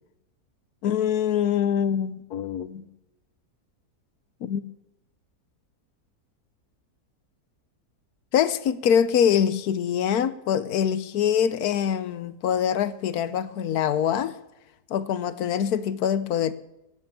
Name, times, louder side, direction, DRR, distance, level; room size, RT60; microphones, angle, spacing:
voice 1, 0.8-2.8 4.4-4.6 8.3-14.4 14.9-16.5, left 8 dB, 75° left, 1.3 m, -24 dB
17.0 x 9.6 x 7.0 m
omnidirectional pair, 1.7 m